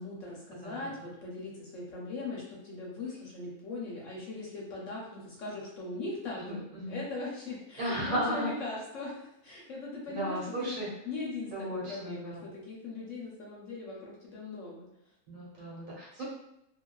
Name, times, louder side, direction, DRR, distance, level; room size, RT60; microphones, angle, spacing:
voice 1, 0.0-10.8 11.0-14.9, left 3 dB, 65° left, -4 dB, 0.9 m, -40 dB
voice 2, 6.4-7.0 7.8-8.5 10.1-10.9 11.5-12.5 15.3-16.2, equal, 65° right, -6 dB, 1.2 m, -35 dB
2.3 x 2.3 x 2.2 m, 0.80 s
omnidirectional pair, 1.6 m